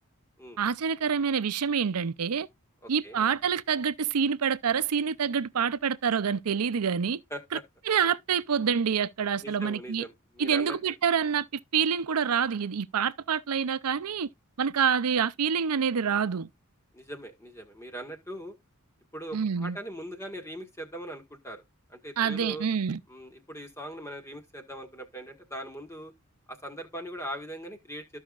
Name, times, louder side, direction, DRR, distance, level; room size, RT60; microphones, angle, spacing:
voice 1, 0.6-2.5 2.9-7.2 7.9-10.0 10.4-14.3 14.6-16.5 19.3-19.8 22.2-23.0, right 7 dB, 90° right, 0.6 m, -27 dB
voice 2, 2.8-3.2 7.3-7.6 9.4-10.8 16.9-18.5 19.1-21.6 21.9-22.7 23.1-26.1 26.5-28.2, right 1 dB, 10° left, 1.6 m, -40 dB
14.0 x 5.6 x 2.4 m
head